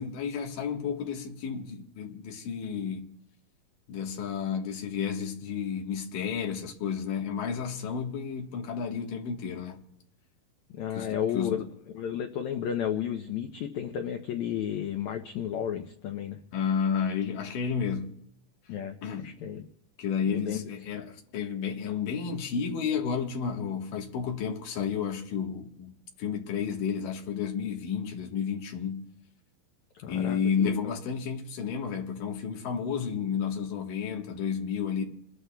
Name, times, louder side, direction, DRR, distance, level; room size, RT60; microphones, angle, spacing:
voice 1, 0.0-3.1 3.9-9.8 10.9-11.6 16.5-18.2 19.0-19.3 20.0-29.0 30.1-35.0, left 7 dB, 65° left, 2.9 m, -31 dB
voice 2, 10.7-11.7 11.9-16.4 18.7-19.7 20.3-20.7 30.0-30.8, left 9 dB, 85° left, 1.6 m, -33 dB
28.5 x 20.5 x 2.3 m
omnidirectional pair, 4.3 m